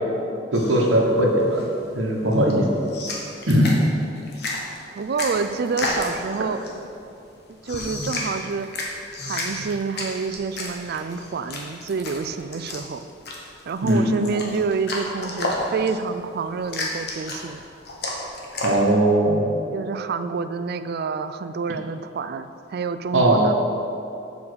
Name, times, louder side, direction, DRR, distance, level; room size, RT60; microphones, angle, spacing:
sound 1, 0.5-18.8, left 2 dB, 60° left, 1.3 m, -32 dB
voice 1, 0.5-1.6 1.9-2.7 3.5-3.7 13.8-14.2 18.6-19.5 23.1-23.5, right 1 dB, 85° right, 0 dB, 1.2 m, -19 dB
voice 2, 5.0-6.6 7.5-8.7 9.2-13.1 13.7-17.7 19.7-23.5, right 5 dB, 55° right, 11 dB, 0.4 m, -28 dB
7.1 x 5.2 x 6.7 m, 2.6 s
head